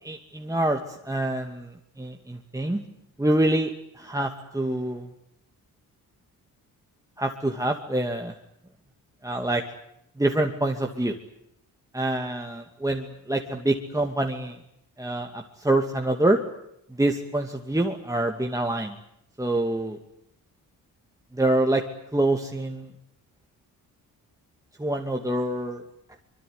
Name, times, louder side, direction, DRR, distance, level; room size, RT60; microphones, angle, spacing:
voice 1, 0.0-2.8 3.2-5.1 7.2-8.3 9.2-9.6 10.2-11.1 11.9-14.6 15.0-16.4 16.9-18.9 19.4-20.0 21.3-21.8 22.1-22.9 24.8-25.8, right 1 dB, 10° right, 3 dB, 2.5 m, -26 dB
24.5 x 23.0 x 9.6 m, 0.77 s
cardioid pair, 75°, 37 cm